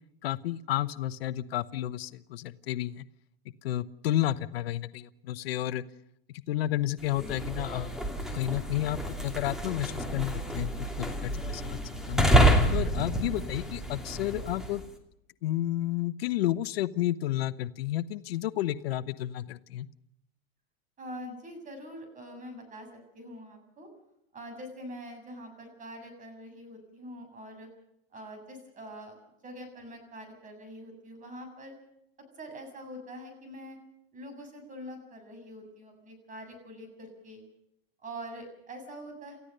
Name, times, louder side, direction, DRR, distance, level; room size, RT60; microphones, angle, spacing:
voice 1, 0.2-3.0 3.6-5.8 6.5-7.9 8.3-11.8 12.1-12.2 12.7-14.8 15.4-19.9, left 14 dB, 80° left, 15 dB, 0.9 m, -31 dB
sound 1, 7.0-14.9, right 1 dB, ahead, 2.7 m, -28 dB
voice 2, 21.0-22.9 23.1-23.9 24.3-27.7 28.1-31.8 32.4-33.8 34.1-37.4 38.0-39.4, equal, 25° right, 6 dB, 7.2 m, -44 dB
29.0 x 15.0 x 6.6 m, 0.80 s
supercardioid pair, 130°, 30 cm